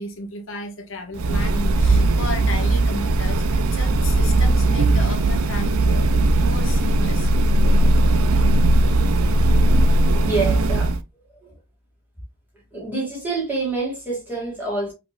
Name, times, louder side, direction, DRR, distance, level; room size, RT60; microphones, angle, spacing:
voice 1, 0.0-6.1 6.4-7.3, left 2 dB, 65° left, 0.9 m, -33 dB
sound 1, 1.1-11.0, right 2 dB, 85° right, 0.5 m, -18 dB
voice 2, 10.1-10.9 11.4-11.5 12.7-14.9, right 3 dB, 10° right, 2.3 m, -27 dB
4.9 x 3.5 x 2.5 m
head